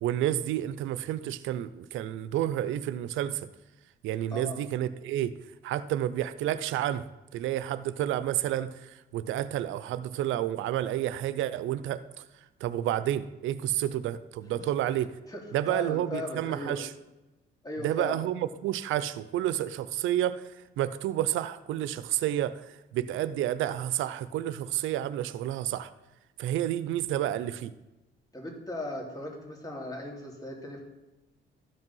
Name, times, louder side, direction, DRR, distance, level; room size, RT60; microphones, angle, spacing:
voice 1, 0.0-3.5 4.0-5.3 5.6-7.0 7.3-12.0 12.6-15.1 15.5-16.9 17.8-20.4 20.8-22.6 22.9-25.9 26.4-27.7, right 12 dB, 85° right, 14 dB, 0.5 m, -30 dB
voice 2, 15.3-16.8 17.6-18.2 28.3-30.8, left 1 dB, 20° left, 0 dB, 3.0 m, -37 dB
13.0 x 5.3 x 5.5 m, 1.0 s
cardioid pair, 90°, 20 cm